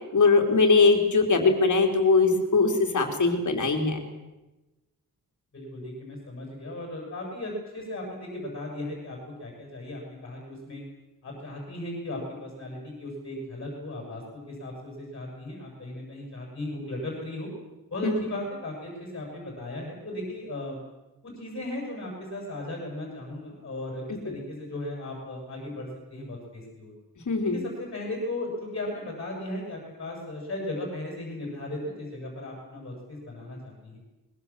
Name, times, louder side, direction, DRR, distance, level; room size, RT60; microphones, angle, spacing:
voice 1, 0.1-4.0 18.0-18.2 24.1-24.4 27.3-27.6, left 4 dB, 55° left, 4 dB, 3.7 m, -21 dB
voice 2, 5.5-10.8 11.2-17.5 17.9-20.8 21.2-26.9 27.4-34.0, left 1 dB, 35° left, -1 dB, 7.8 m, -36 dB
24.5 x 22.0 x 7.5 m, 1.0 s
wide cardioid pair, 175°, 35 cm